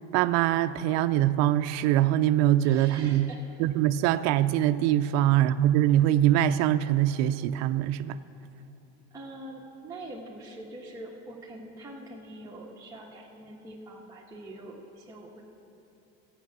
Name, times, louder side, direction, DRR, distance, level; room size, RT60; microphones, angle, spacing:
voice 1, 0.1-3.3 3.6-8.2, right 12 dB, 65° right, 0.5 m, -23 dB
voice 2, 2.6-3.4 9.1-15.4, right 1 dB, 10° right, 1.4 m, -44 dB
13.5 x 8.5 x 6.0 m
supercardioid pair, 115°, 30 cm